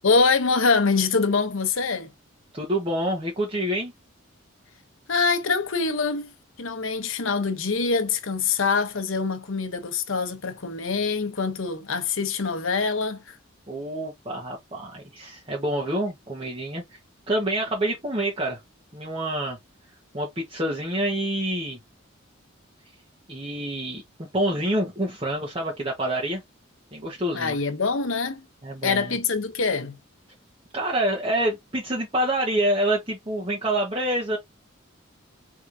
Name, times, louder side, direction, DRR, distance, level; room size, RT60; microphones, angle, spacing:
voice 1, 0.0-2.1 5.1-6.3 6.6-13.4 27.3-28.4 28.8-30.0, left 4 dB, 75° left, 0.9 m, -24 dB
voice 2, 2.5-3.9 13.7-17.0 17.3-18.6 18.9-19.6 20.1-21.8 23.3-24.0 24.3-26.4 26.9-27.6 28.6-29.2 30.7-34.4, right 1 dB, 25° right, 1.3 m, -27 dB
4.7 x 3.5 x 2.7 m
head